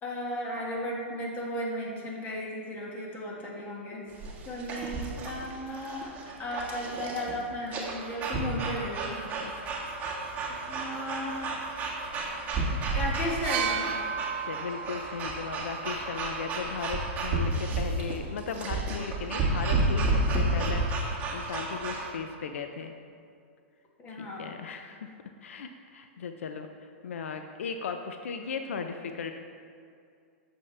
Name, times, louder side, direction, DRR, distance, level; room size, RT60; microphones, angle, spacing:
voice 1, 0.0-4.0 4.5-9.6 10.7-11.7 12.9-13.9 24.0-24.5, equal, 25° left, -2 dB, 1.8 m, -35 dB
sound 1, 4.1-22.1, right 2 dB, 25° right, 1.6 m, -31 dB
voice 2, 9.4-9.9 14.5-22.9 24.1-25.1 25.4-29.3, left 6 dB, 85° left, 6 dB, 0.6 m, -37 dB
sound 2, 13.4-17.2 18.3-18.4, right 7 dB, 55° right, 0.7 m, -35 dB
8.6 x 7.1 x 3.3 m, 2.3 s
hypercardioid pair, 135°, 7 cm